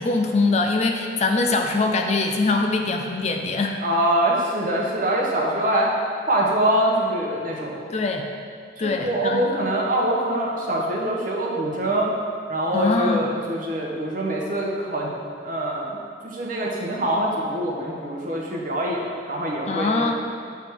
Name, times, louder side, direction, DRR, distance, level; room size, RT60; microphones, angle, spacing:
voice 1, 0.0-3.8 7.9-8.3 8.8-9.5 12.7-13.3 19.7-20.1, left 3 dB, 35° left, 4 dB, 0.4 m, -23 dB
voice 2, 3.8-5.9 6.3-7.8 8.8-12.1 12.5-15.1 15.4-20.1, right 1 dB, 45° right, -3 dB, 1.0 m, -24 dB
8.0 x 3.5 x 4.6 m, 2.3 s
head